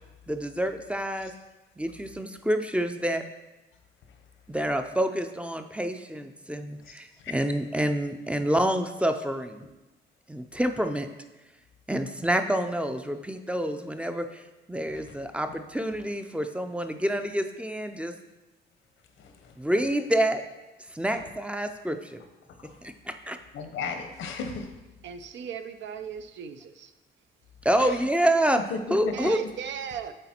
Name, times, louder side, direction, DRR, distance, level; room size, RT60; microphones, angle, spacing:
voice 1, 0.3-1.3 1.8-3.2 4.5-9.7 10.3-11.1 11.9-14.4 14.7-18.1 19.6-20.4 20.9-22.2 22.8-23.4 27.6-28.6 28.9-29.4, right 1 dB, 5° right, 7 dB, 0.5 m, -27 dB
voice 2, 19.2-19.5 21.1-21.2 22.6-22.8 23.5-24.7 27.8-28.0 28.7-29.6, left 4 dB, 80° left, 6 dB, 0.9 m, -36 dB
voice 3, 25.0-26.9 29.1-30.1, right 7 dB, 65° right, 9 dB, 0.5 m, -37 dB
7.9 x 4.1 x 4.3 m, 1.1 s
cardioid pair, 90°, 20 cm